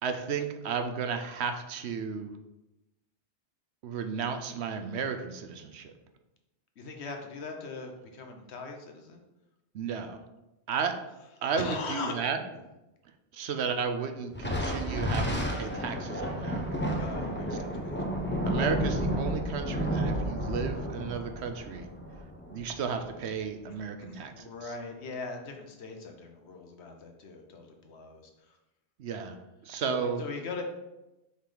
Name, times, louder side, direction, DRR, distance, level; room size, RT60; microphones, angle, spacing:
voice 1, 0.0-2.3 3.8-5.9 9.7-10.2 10.7-11.0 11.4-12.4 13.3-16.6 17.5-17.6 18.5-21.9 22.5-24.3 29.0-29.4 29.6-30.2, right 6 dB, 75° right, 7 dB, 0.9 m, -33 dB
voice 2, 6.8-9.2 11.6-12.6 17.0-18.0 24.0-28.6 29.8-30.6, left 3 dB, 70° left, 3 dB, 1.2 m, -40 dB
Thunder, 14.3-23.1, equal, 10° left, 0.7 m, -31 dB
5.5 x 5.1 x 3.8 m, 0.97 s
omnidirectional pair, 1.2 m